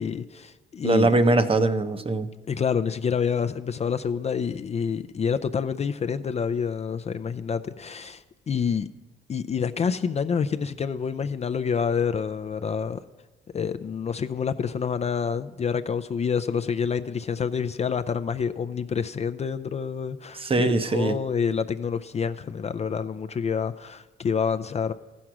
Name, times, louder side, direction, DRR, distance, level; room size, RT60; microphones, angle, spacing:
voice 1, 0.0-1.2 2.5-8.9 9.3-13.0 13.5-24.9, left 6 dB, 35° left, 0.4 m, -27 dB
voice 2, 0.8-2.3 20.4-21.2, right 2 dB, 30° right, 0.7 m, -21 dB
14.5 x 6.2 x 5.9 m
cardioid pair, 90°, 20 cm